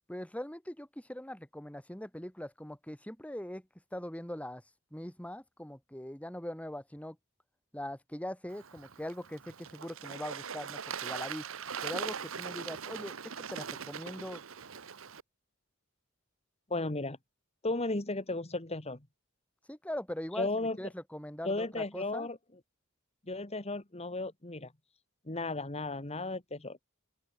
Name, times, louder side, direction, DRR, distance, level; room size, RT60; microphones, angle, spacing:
voice 1, 0.1-3.6 3.9-4.6 4.9-7.2 7.7-11.4 11.8-13.1 13.5-14.4 19.7-22.3, left 1 dB, 5° left, 2.2 m, -41 dB
Bird / Water, 8.5-15.2, right 7 dB, 70° right, 1.1 m, -41 dB
voice 2, 16.7-17.2 17.6-19.1 20.4-20.8 21.4-22.4 23.3-24.7 25.3-26.8, left 2 dB, 30° left, 2.1 m, -34 dB
head